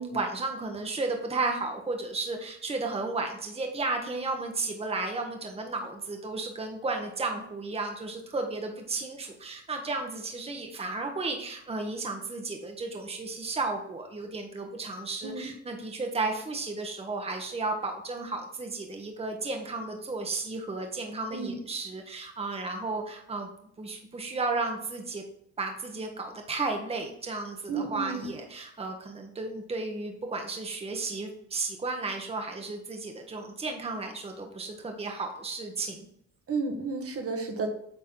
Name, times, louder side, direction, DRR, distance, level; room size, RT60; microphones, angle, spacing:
voice 1, 0.0-23.5 23.8-25.2 25.6-36.0, right 3 dB, 20° right, 3 dB, 1.0 m, -33 dB
voice 2, 27.7-28.3 36.5-37.7, right 4 dB, 50° right, 4 dB, 1.3 m, -32 dB
8.2 x 4.1 x 3.8 m, 0.71 s
cardioid pair, 90°, 30 cm